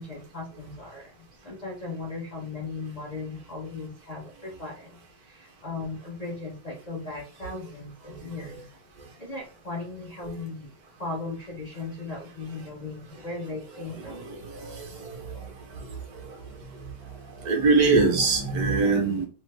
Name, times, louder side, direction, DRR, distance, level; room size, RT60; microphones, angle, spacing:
voice 1, 0.0-8.6 9.2-10.7 11.0-14.3 17.0-17.7, left 3 dB, 65° left, -2 dB, 0.4 m, -37 dB
voice 2, 13.8-15.4 17.4-19.3, right 4 dB, 65° right, 2 dB, 1.2 m, -24 dB
3.2 x 2.0 x 3.2 m, 0.37 s
omnidirectional pair, 1.9 m